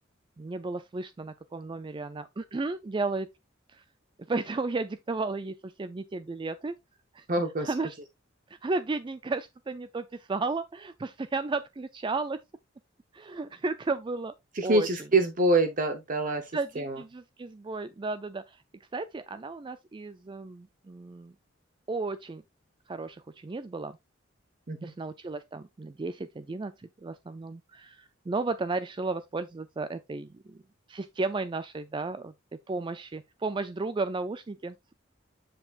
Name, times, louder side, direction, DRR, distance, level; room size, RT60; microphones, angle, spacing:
voice 1, 0.4-3.3 3.7-3.8 4.3-6.7 7.1-7.3 7.6-8.0 8.5-12.4 13.1-14.3 14.6-14.9 16.5-18.6 18.9-21.3 21.9-22.4 22.9-24.0 24.8-30.6 30.9-32.3 32.7-34.9, right 3 dB, 25° right, 0.4 m, -34 dB
voice 2, 7.3-7.7 14.5-17.0 24.7-24.9, right 2 dB, 45° right, 0.8 m, -26 dB
7.7 x 7.0 x 2.4 m
head